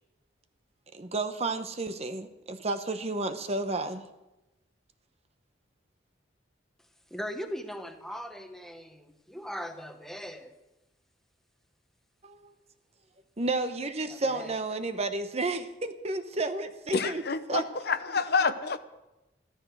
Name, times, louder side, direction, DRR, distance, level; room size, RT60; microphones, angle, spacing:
voice 1, 0.9-4.0 12.2-12.5 13.4-17.2 17.5-17.6, right 2 dB, 35° right, 9 dB, 0.9 m, -31 dB
voice 2, 7.1-10.5 14.1-14.5, equal, ahead, 6 dB, 1.2 m, -39 dB
voice 3, 16.9-18.8, left 4 dB, 55° left, 10 dB, 0.8 m, -28 dB
14.5 x 13.0 x 6.4 m, 0.98 s
head